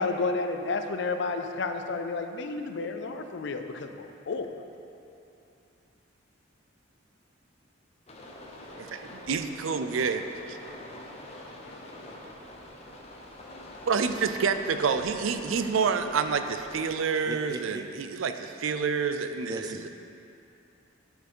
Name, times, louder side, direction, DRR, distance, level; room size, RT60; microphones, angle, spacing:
voice 1, 0.0-4.5, left 3 dB, 60° left, 7 dB, 0.5 m, -31 dB
sound 1, 8.1-16.8, left 1 dB, 30° left, 0.8 m, -45 dB
voice 2, 8.8-10.2 10.5-10.6 13.8-19.9, right 5 dB, 85° right, 8 dB, 0.4 m, -28 dB
voice 3, 17.3-17.8 19.4-19.9, right 2 dB, 20° right, 6 dB, 0.3 m, -38 dB
10.5 x 4.6 x 4.5 m, 2.7 s
head